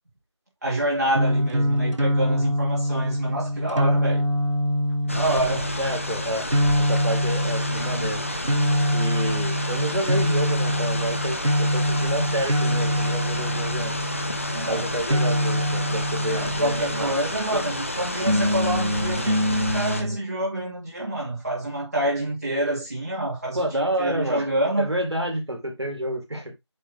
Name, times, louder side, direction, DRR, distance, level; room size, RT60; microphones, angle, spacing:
voice 1, 0.6-4.2 5.1-5.7 14.5-14.9 16.3-24.9, right 1 dB, 35° right, 2.8 m, -27 dB
sound 1, 1.1-17.4 18.2-20.2, equal, 85° right, 2.0 m, -24 dB
sound 2, 5.1-20.0, left 1 dB, 30° left, 1.0 m, -31 dB
voice 2, 5.8-6.5 6.8-8.2 8.9-13.9 14.6-17.1 17.5-17.6 23.5-24.5 24.8-26.7, right 1 dB, 65° right, 3.6 m, -29 dB
9.8 x 3.7 x 3.6 m
figure-of-eight pair, 175°, 15 cm